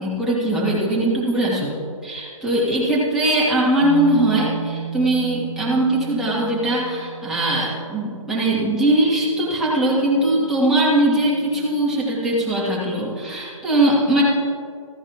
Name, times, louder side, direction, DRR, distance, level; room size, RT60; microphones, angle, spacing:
voice 1, 0.0-1.7 2.0-14.2, right 1 dB, ahead, -8 dB, 2.5 m, -20 dB
sound 1, 3.8-13.3, right 9 dB, 20° right, 2.2 m, -36 dB
15.5 x 10.5 x 3.0 m, 2.2 s
hypercardioid pair, 145°, 17 cm